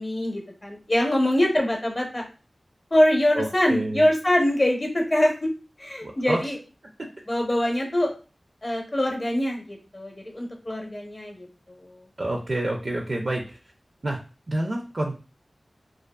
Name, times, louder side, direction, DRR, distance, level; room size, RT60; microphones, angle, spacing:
voice 1, 0.0-2.2 2.9-5.5 5.8-6.6 7.3-8.1 8.6-11.5 11.8-11.9, left 1 dB, 35° left, 1 dB, 0.7 m, -23 dB
voice 2, 3.3-4.1 6.3-6.4 12.2-13.6 14.0-14.2 14.5-15.2, right 1 dB, 60° right, 1 dB, 0.4 m, -28 dB
2.4 x 2.3 x 2.2 m, 0.34 s
wide cardioid pair, 70°, 0 cm